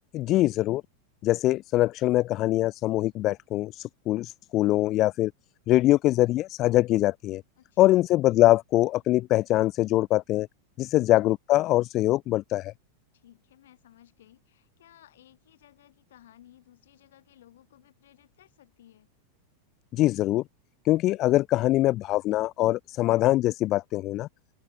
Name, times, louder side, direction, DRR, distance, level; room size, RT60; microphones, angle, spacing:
voice 1, 0.1-0.8 1.2-5.3 5.7-7.4 7.8-10.5 10.8-12.7 19.9-20.4 20.8-24.3, left 16 dB, 40° left, 0.3 m, -23 dB
voice 2, 7.6-8.0 10.9-11.1 13.1-19.1, left 12 dB, 80° left, 4.8 m, -57 dB
open air
hypercardioid pair, 115°, 0 cm